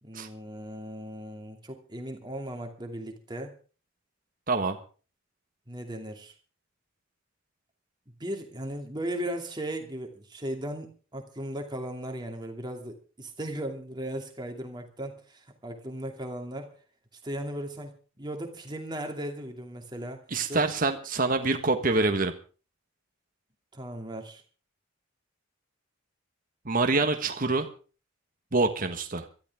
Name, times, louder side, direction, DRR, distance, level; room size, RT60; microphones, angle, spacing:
voice 1, 0.0-3.5 5.7-6.3 8.2-16.8 17.2-20.2 20.5-20.6 23.7-24.4, right 1 dB, 20° right, 3 dB, 2.6 m, -37 dB
voice 2, 4.5-4.8 20.3-22.3 26.6-27.7 28.5-29.3, right 3 dB, 45° right, 6 dB, 1.5 m, -26 dB
22.5 x 13.5 x 3.6 m, 0.37 s
head